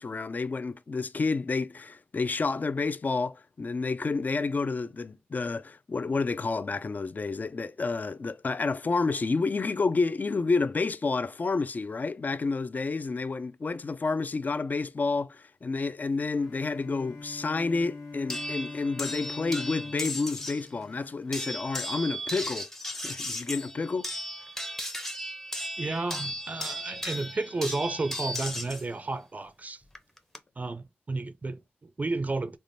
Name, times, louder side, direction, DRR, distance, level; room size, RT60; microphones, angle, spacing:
voice 1, 0.0-22.7 23.0-24.1, left 4 dB, 45° left, 0.3 m, -30 dB
Bowed string instrument, 16.3-21.7, left 3 dB, 75° left, 1.3 m, -43 dB
sound 1, 18.3-20.7 21.3-28.8 29.9-30.4, equal, 10° left, 0.6 m, -36 dB
voice 2, 25.8-29.8 30.6-32.6, right 3 dB, 40° right, 0.4 m, -32 dB
3.4 x 2.1 x 2.6 m
cardioid pair, 55°, 4 cm